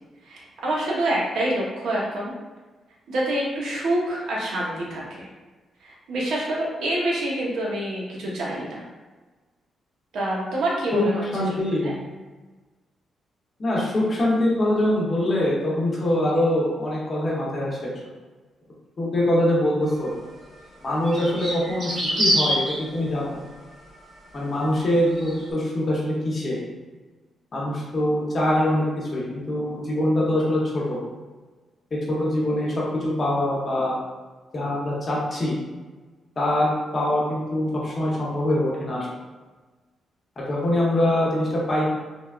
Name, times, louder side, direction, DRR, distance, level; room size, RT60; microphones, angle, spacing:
voice 1, 0.3-2.3 3.1-5.3 5.8-8.9 10.1-11.2 11.8-11.9, right 1 dB, 80° right, -4 dB, 0.8 m, -26 dB
voice 2, 10.9-12.0 13.6-17.9 19.0-20.1 20.8-23.4 24.3-26.6 27.5-31.0 31.9-33.9 34.5-35.5 36.4-36.7 36.9-39.1 40.4-41.9, left 1 dB, 30° left, -5 dB, 0.8 m, -23 dB
sound 1, 20.1-20.2 21.0-22.8 25.1-25.4, equal, 45° right, 0.9 m, -24 dB
3.3 x 2.2 x 2.4 m, 1.3 s
cardioid pair, 150°, 0 cm